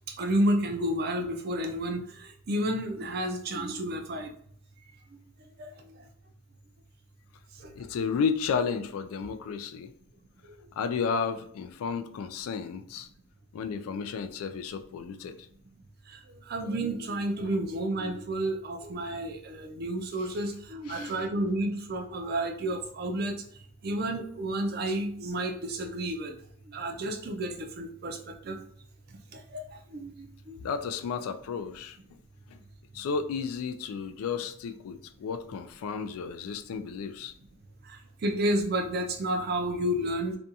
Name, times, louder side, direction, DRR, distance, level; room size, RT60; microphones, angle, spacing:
voice 1, 0.1-4.3 5.1-5.2 5.6-6.1 7.5-7.7 10.4-10.7 13.9-14.0 16.1-26.4 26.7-28.6 29.1-30.7 37.8-40.4, right 1 dB, 45° right, 4 dB, 0.4 m, -31 dB
voice 2, 7.8-9.9 10.8-13.1 13.5-15.4 20.9-21.1 30.6-32.0 32.5-32.6 32.9-37.3, left 6 dB, 85° left, 10 dB, 0.3 m, -32 dB
2.6 x 2.3 x 2.7 m, 0.64 s
head